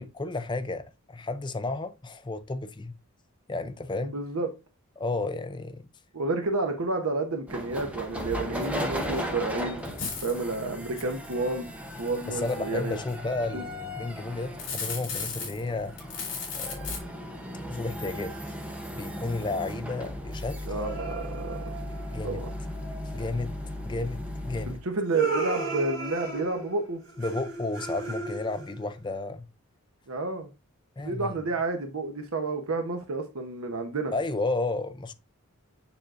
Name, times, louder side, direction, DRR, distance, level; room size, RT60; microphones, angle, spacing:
voice 1, 0.0-2.9 3.5-4.2 5.0-5.8 12.3-15.9 16.5-16.9 17.6-18.3 18.9-20.6 22.1-22.4 23.1-23.6 23.8-24.8 27.2-29.4 31.0-31.4 34.1-35.1, left 2 dB, 20° left, 0.4 m, -32 dB
voice 2, 4.0-4.5 6.1-9.9 10.2-11.7 12.0-13.0 13.5-13.6 20.7-21.6 22.2-22.5 24.7-27.0 30.1-30.5 31.0-34.1, right 3 dB, 75° right, 0.8 m, -30 dB
sound 1, 7.5-24.8, equal, 5° right, 0.8 m, -37 dB
sound 2, 9.8-10.5 11.0-11.3 12.0-12.5 14.4-15.7 16.0-17.0, left 5 dB, 55° left, 3.0 m, -35 dB
sound 3, 20.8-23.5 25.1-28.9, right 3 dB, 55° right, 3.5 m, -35 dB
7.0 x 6.2 x 2.5 m
head